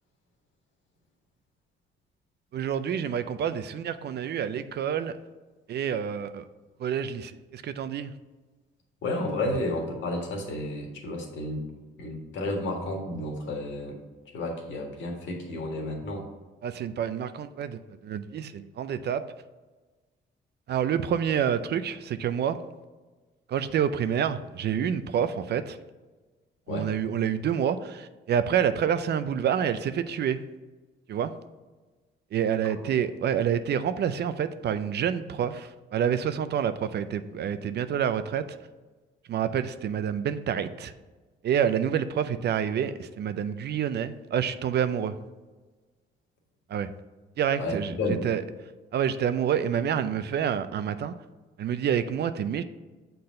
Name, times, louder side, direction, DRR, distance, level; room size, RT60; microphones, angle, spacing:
voice 1, 2.5-5.2 5.7-6.4 6.8-8.1 16.6-19.3 20.7-22.6 23.5-25.8 26.7-30.4 31.1-31.3 32.3-38.6 39.3-40.9 41.4-45.2 46.7-46.9 47.4-47.9 48.2-48.4 48.9-51.1 51.6-52.6, right 8 dB, 55° right, 12 dB, 0.5 m, -28 dB
voice 2, 9.0-11.6 12.0-14.0 14.3-16.2 26.7-26.9 32.6-32.7 47.6-48.2, left 1 dB, 70° left, 1 dB, 1.8 m, -31 dB
6.7 x 4.0 x 5.3 m, 1.3 s
cardioid pair, 90°, 20 cm